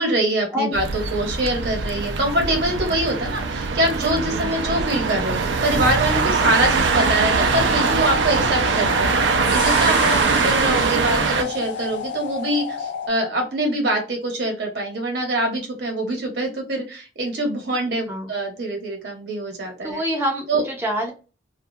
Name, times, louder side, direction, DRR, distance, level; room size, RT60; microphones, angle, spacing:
voice 1, 0.0-9.2 9.5-10.0 10.3-20.0 20.5-20.6, right 1 dB, 65° right, 2 dB, 0.9 m, -24 dB
sound 1, 0.7-11.4, right 4 dB, 85° right, 0.4 m, -22 dB
sound 2, 6.9-13.1, left 6 dB, 85° left, 0.4 m, -31 dB
voice 2, 19.8-21.1, equal, 10° right, 0 dB, 0.4 m, -26 dB
2.3 x 2.1 x 2.6 m, 0.32 s
head